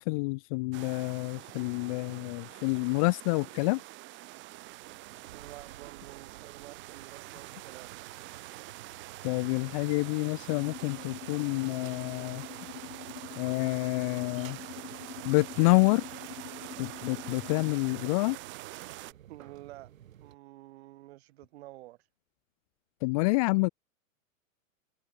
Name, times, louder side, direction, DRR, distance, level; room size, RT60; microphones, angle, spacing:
voice 1, 0.0-3.8 9.2-12.4 13.4-14.6 15.3-16.0 16.8-18.4 23.0-23.7, left 27 dB, 25° left, 0.6 m, -28 dB
sound 1, 0.7-19.1, right 19 dB, 25° right, 4.2 m, -45 dB
sound 2, 4.3-20.4, right 11 dB, 70° right, 8.0 m, -54 dB
voice 2, 5.3-7.9 19.2-19.9 20.2-22.0, right 17 dB, 50° right, 6.9 m, -49 dB
sound 3, 10.5-17.9, left 10 dB, 85° left, 5.3 m, -45 dB
hypercardioid pair, 160°, 41 cm